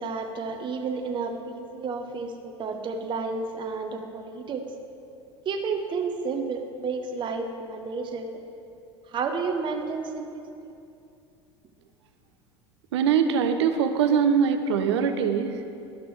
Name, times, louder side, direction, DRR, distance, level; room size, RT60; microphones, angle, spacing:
voice 1, 0.0-4.7 5.5-8.3 9.1-10.7, right 4 dB, 35° right, 4 dB, 0.7 m, -31 dB
voice 2, 12.9-15.6, right 7 dB, 80° right, 7 dB, 0.6 m, -22 dB
11.5 x 6.0 x 3.2 m, 2.6 s
hypercardioid pair, 85°, 14 cm